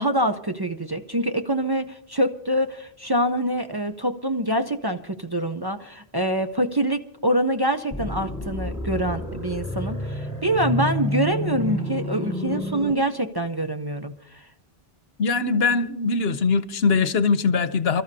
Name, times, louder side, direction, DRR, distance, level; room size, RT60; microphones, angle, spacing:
voice 1, 0.0-14.1, right 1 dB, 25° right, 0.6 m, -25 dB
sound 1, 7.9-12.9, left 1 dB, 15° left, 3.9 m, -29 dB
voice 2, 15.2-18.0, left 4 dB, 75° left, 1.0 m, -21 dB
28.5 x 13.5 x 2.7 m
omnidirectional pair, 1.1 m